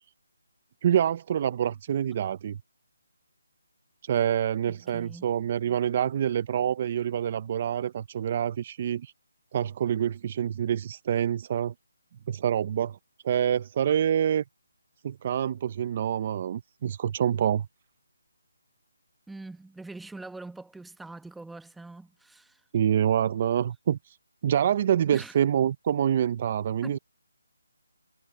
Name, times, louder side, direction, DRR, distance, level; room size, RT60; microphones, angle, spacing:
voice 1, 0.8-2.6 4.0-9.1 9.5-11.7 12.3-13.0 13.2-14.4 15.0-17.7 22.7-24.2 24.4-27.0, right 9 dB, 30° right, 0.5 m, -26 dB
voice 2, 4.7-5.2 19.3-22.6 25.1-25.4 26.8-27.0, right 2 dB, ahead, 1.0 m, -43 dB
hypercardioid pair, 170°, 0 cm